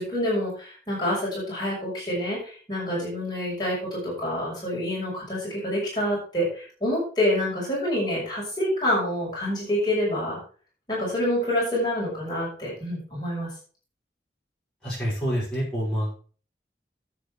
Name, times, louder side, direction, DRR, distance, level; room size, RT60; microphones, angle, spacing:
voice 1, 0.0-10.4 10.9-13.5, left 1 dB, 25° left, -6 dB, 6.1 m, -27 dB
voice 2, 14.8-16.3, equal, 5° left, -8 dB, 6.0 m, -27 dB
10.0 x 8.7 x 4.9 m, 0.41 s
head